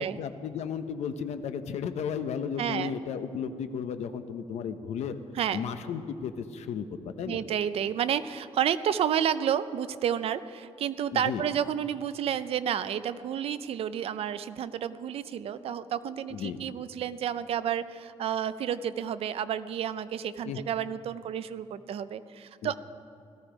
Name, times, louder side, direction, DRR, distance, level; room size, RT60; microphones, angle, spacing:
voice 1, 0.2-5.2 5.5-7.4 11.1-11.4 16.3-16.6 20.4-20.6 22.6-22.7, left 7 dB, 75° left, 9 dB, 0.9 m, -34 dB
voice 2, 2.6-2.9 5.4-5.6 7.3-22.7, right 9 dB, 60° right, 13 dB, 0.5 m, -30 dB
17.5 x 13.5 x 5.1 m, 2.4 s
wide cardioid pair, 180°, 11 cm